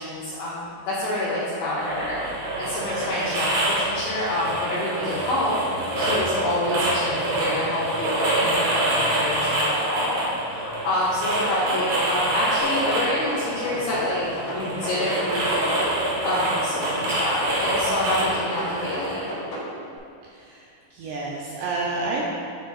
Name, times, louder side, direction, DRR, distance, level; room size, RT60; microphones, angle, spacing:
voice 1, 0.0-5.5 5.9-19.2, left 1 dB, 85° left, -8 dB, 2.2 m, -27 dB
sound 1, 1.8-19.3, right 1 dB, 65° right, 3.1 m, -26 dB
sound 2, 12.6-14.1 14.4-15.9 16.2-17.8 18.1-19.7, left 1 dB, 60° left, 2.2 m, -34 dB
voice 2, 20.2-22.3, right 3 dB, 85° right, -3 dB, 2.5 m, -30 dB
10.5 x 4.5 x 2.3 m, 2.4 s
omnidirectional pair, 5.5 m